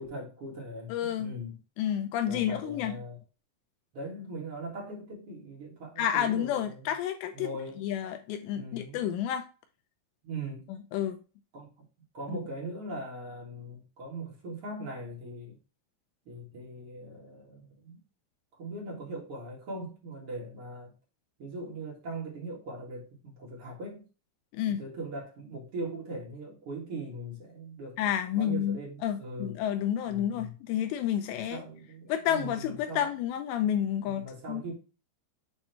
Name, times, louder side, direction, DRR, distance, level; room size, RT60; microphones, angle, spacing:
voice 1, 0.0-1.5 2.3-3.2 3.9-6.8 7.3-7.8 8.5-9.1 10.2-10.7 11.5-11.7 12.1-15.6 16.2-18.0 18.6-20.9 21.4-24.1 24.8-28.0 28.3-29.5 30.0-30.5 31.4-33.0 34.0-34.7, right 1 dB, 55° right, 1.6 m, -40 dB
voice 2, 0.9-1.3 1.8-3.0 6.0-7.5 7.8-9.5 10.7-11.2 12.3-12.4 24.5-24.8 28.0-31.6 32.1-34.6, left 10 dB, 85° left, 2.5 m, -30 dB
7.5 x 3.1 x 4.4 m
omnidirectional pair, 5.5 m